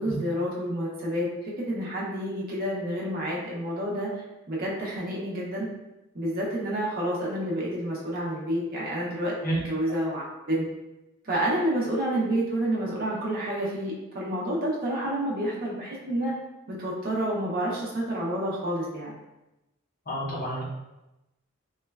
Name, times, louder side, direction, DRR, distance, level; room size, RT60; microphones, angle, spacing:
voice 1, 0.0-4.1 4.5-5.7 6.1-10.6 11.2-16.3 16.7-19.2, right 1 dB, 40° right, -4 dB, 0.5 m, -29 dB
voice 2, 20.1-20.6, right 1 dB, 40° left, -5 dB, 0.7 m, -29 dB
3.0 x 2.1 x 2.2 m, 0.97 s
head